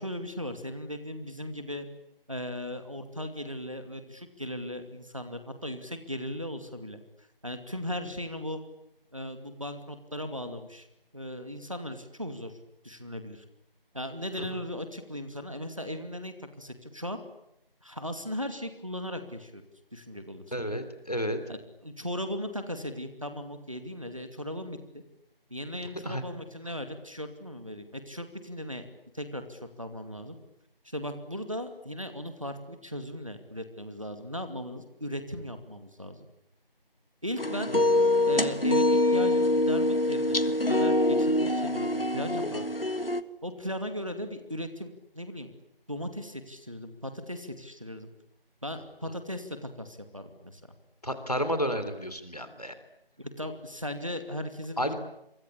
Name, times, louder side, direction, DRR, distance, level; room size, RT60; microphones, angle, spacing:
voice 1, 0.0-1.9 2.3-7.0 7.4-8.6 9.1-10.9 11.1-12.5 12.8-13.4 13.9-17.2 17.8-19.6 19.9-20.4 21.5-25.0 25.5-28.9 29.1-30.4 30.8-36.3 37.2-37.7 38.2-40.4 40.7-42.7 43.4-45.5 45.9-48.1 48.6-50.6 53.2-54.9, equal, 35° right, 8 dB, 2.5 m, -37 dB
voice 2, 20.5-21.4 26.0-26.2 37.7-37.8 51.0-52.7 54.8-54.9, equal, 40° left, 10 dB, 3.3 m, -31 dB
sound 1, 37.4-43.2, left 1 dB, 70° left, 1.7 m, -25 dB
28.5 x 24.0 x 8.6 m, 0.82 s
figure-of-eight pair, 180°, 30 cm